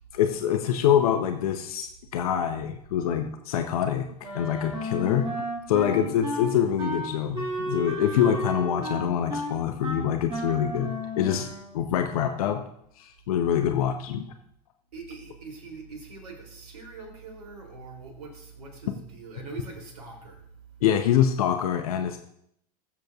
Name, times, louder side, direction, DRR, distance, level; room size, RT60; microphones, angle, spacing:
voice 1, 0.1-4.0 4.3-5.3 5.7-11.5 11.7-12.6 13.0-14.3 20.8-22.2, left 9 dB, 60° left, 6 dB, 0.9 m, -25 dB
Wind instrument woodwind instrument, 4.2-11.8, equal, 25° right, 4.8 m, -33 dB
voice 2, 14.9-20.5, right 3 dB, 65° right, 3 dB, 3.2 m, -43 dB
22.0 x 7.8 x 2.5 m, 0.71 s
figure-of-eight pair, 85°, 21 cm